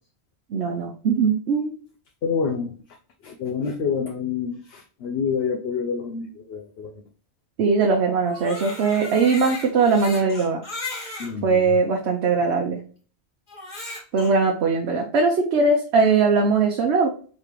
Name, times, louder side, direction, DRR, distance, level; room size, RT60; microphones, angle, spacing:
voice 1, 0.5-1.7 7.6-10.6 11.4-12.8 14.1-17.1, right 4 dB, 85° right, 1 dB, 1.0 m, -20 dB
voice 2, 2.2-2.7 3.2-7.0 11.2-11.6, left 6 dB, 75° left, 2 dB, 0.9 m, -27 dB
Crying sobbing, 8.2-11.3 12.0-12.1 13.5-14.3, left 2 dB, 45° left, 1.3 m, -36 dB
5.0 x 3.3 x 3.0 m, 0.40 s
omnidirectional pair, 1.1 m